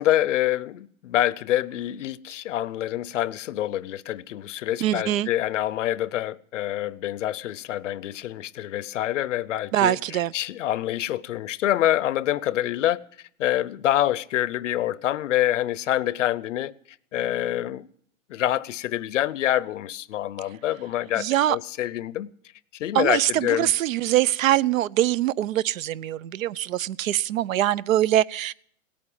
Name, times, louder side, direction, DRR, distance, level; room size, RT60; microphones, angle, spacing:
voice 1, 0.0-13.0 13.4-16.7 17.1-17.9 18.3-22.3 22.7-23.7, left 13 dB, 65° left, 0.7 m, -26 dB
voice 2, 4.8-5.3 9.7-10.3 21.2-21.6 22.9-28.5, right 13 dB, 75° right, 0.6 m, -23 dB
18.0 x 8.6 x 8.8 m
hypercardioid pair, 170°, 40 cm